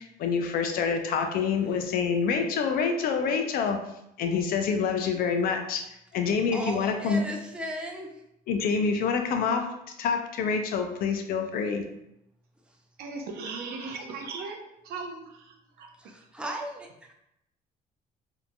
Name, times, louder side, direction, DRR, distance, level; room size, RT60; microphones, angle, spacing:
voice 1, 0.0-3.8 4.2-5.8 6.1-7.2 8.5-9.7 10.0-11.8, left 5 dB, 65° left, 5 dB, 0.4 m, -26 dB
voice 2, 6.5-8.1 16.0-17.1, right 1 dB, 5° right, -1 dB, 0.4 m, -36 dB
voice 3, 13.0-14.6 14.8-15.9, right 4 dB, 75° right, 3 dB, 0.5 m, -37 dB
2.8 x 2.5 x 2.2 m, 0.82 s
cardioid pair, 120°, 16 cm